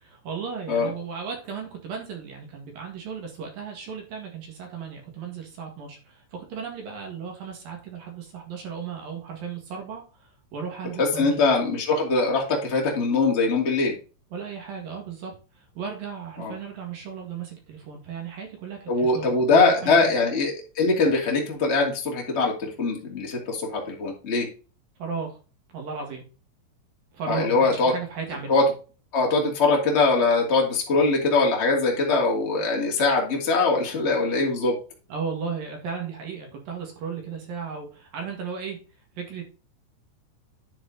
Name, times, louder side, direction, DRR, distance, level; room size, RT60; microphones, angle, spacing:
voice 1, 0.0-11.7 14.3-20.0 25.0-25.4 25.7-26.3 27.1-28.5 35.1-38.8 39.2-39.4, right 6 dB, 55° right, 2 dB, 3.0 m, -35 dB
voice 2, 11.0-13.9 16.4-16.5 18.9-24.5 27.3-27.9 28.5-28.6 29.1-34.7, left 3 dB, 30° left, -1 dB, 1.1 m, -22 dB
10.0 x 4.9 x 4.0 m, 0.34 s
omnidirectional pair, 5.8 m